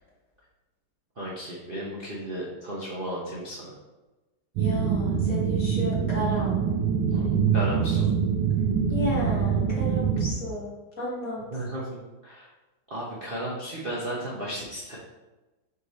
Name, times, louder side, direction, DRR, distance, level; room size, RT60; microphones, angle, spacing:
voice 1, 1.2-3.7 7.1-8.1 11.5-11.8 12.2-12.5 12.9-15.0, right 1 dB, 40° right, -7 dB, 0.8 m, -34 dB
voice 2, 4.6-6.6 8.9-11.4, left 1 dB, 40° left, -6 dB, 1.6 m, -32 dB
sound 1, 4.6-10.3, right 7 dB, 85° right, 1.5 m, -24 dB
5.1 x 4.8 x 4.0 m, 1.1 s
omnidirectional pair, 2.3 m